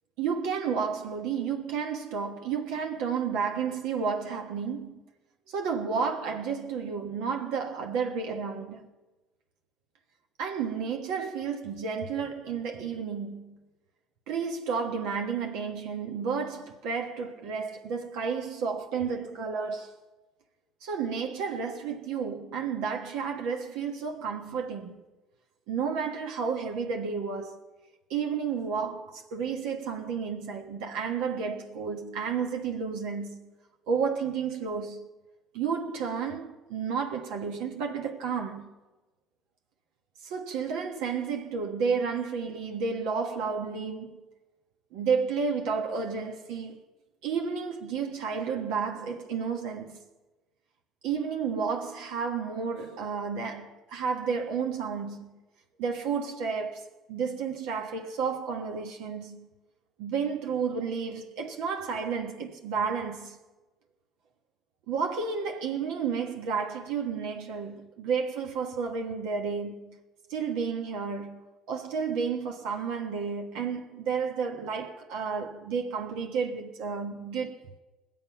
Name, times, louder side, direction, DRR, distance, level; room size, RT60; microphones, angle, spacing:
voice 1, 0.2-5.0 5.5-8.9 10.4-13.6 14.3-20.0 20.8-25.0 25.7-27.6 28.1-33.5 33.9-35.1 35.5-38.7 40.2-44.2 44.9-46.8 47.2-50.0 51.0-55.4 55.8-59.5 60.0-63.4 64.9-70.0 70.3-77.6, right 6 dB, 75° right, 1.3 m, -31 dB
20.0 x 7.7 x 5.8 m
supercardioid pair, 80°, 0 cm